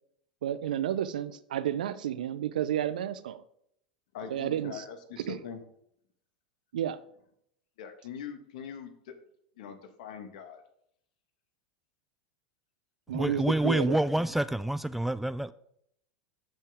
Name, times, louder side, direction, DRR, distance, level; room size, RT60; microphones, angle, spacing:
voice 1, 0.4-3.4 4.3-4.8 5.2-5.4 6.7-7.0 13.1-14.0, right 10 dB, 75° right, 14 dB, 0.6 m, -31 dB
voice 2, 4.1-5.6 7.8-9.2 9.6-10.6, left 7 dB, 65° left, 7 dB, 1.6 m, -42 dB
voice 3, 13.1-15.5, right 1 dB, 5° right, 14 dB, 0.3 m, -27 dB
13.5 x 5.5 x 3.7 m, 0.71 s
hypercardioid pair, 95°, 4 cm